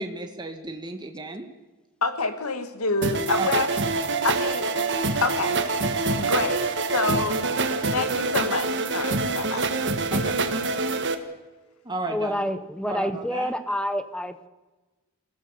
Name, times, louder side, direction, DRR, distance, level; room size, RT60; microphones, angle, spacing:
voice 1, 0.0-1.5 3.4-3.7 10.1-10.3 11.8-12.4 12.9-13.5, right 2 dB, 20° right, 4 dB, 1.6 m, -33 dB
voice 2, 2.0-3.7 4.2-4.9 5.2-5.6 6.1-7.4 7.9-9.7, left 3 dB, 90° left, 7 dB, 2.4 m, -27 dB
sound 1, 3.0-11.1, right 3 dB, 55° right, 1.8 m, -25 dB
voice 3, 12.1-14.5, equal, 5° left, 11 dB, 1.0 m, -28 dB
28.0 x 16.5 x 6.9 m, 1.2 s
head